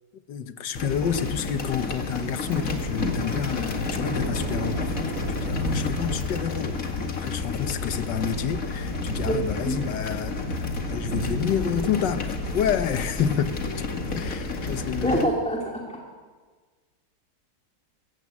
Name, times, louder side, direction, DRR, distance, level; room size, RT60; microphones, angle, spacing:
voice 1, 0.3-6.8 7.1-13.6 14.1-15.3, left 8 dB, 80° left, 11 dB, 1.7 m, -29 dB
sound 1, 0.7-15.2, left 3 dB, 50° left, 2.4 m, -31 dB
sound 2, 2.4-14.9, equal, 45° right, 2.8 m, -34 dB
voice 2, 15.0-16.0, right 1 dB, 5° left, -1 dB, 2.5 m, -25 dB
22.5 x 16.0 x 8.5 m, 1.5 s
omnidirectional pair, 1.9 m